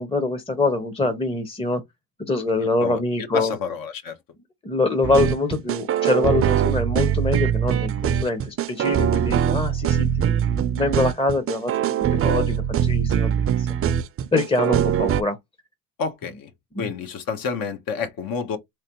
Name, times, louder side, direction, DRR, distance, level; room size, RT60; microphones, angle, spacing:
voice 1, 0.0-1.8 2.2-3.5 4.6-13.7 14.3-15.4 16.7-16.9, left 3 dB, 15° left, 0.8 m, -24 dB
voice 2, 2.8-4.2 16.0-16.5 16.8-18.6, left 5 dB, 60° left, 1.1 m, -29 dB
sound 1, 5.0-15.2, right 9 dB, 35° right, 0.5 m, -22 dB
3.5 x 3.2 x 3.0 m
cardioid pair, 100°, 39 cm